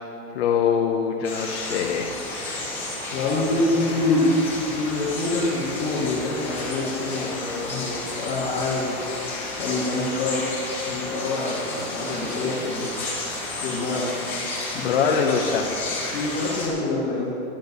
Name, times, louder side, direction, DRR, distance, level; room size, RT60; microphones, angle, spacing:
voice 1, 0.3-2.1 14.8-15.7, left 7 dB, 45° left, 0 dB, 0.9 m, -23 dB
sound 1, 1.2-16.7, left 2 dB, 5° left, 2.3 m, -32 dB
voice 2, 2.7-4.3 4.6-9.0 9.6-10.5 10.9-12.9 13.5-14.2 14.7-15.2 16.0-17.3, left 2 dB, 25° left, -7 dB, 1.9 m, -26 dB
12.0 x 11.0 x 5.3 m, 3.0 s
hypercardioid pair, 165°, 43 cm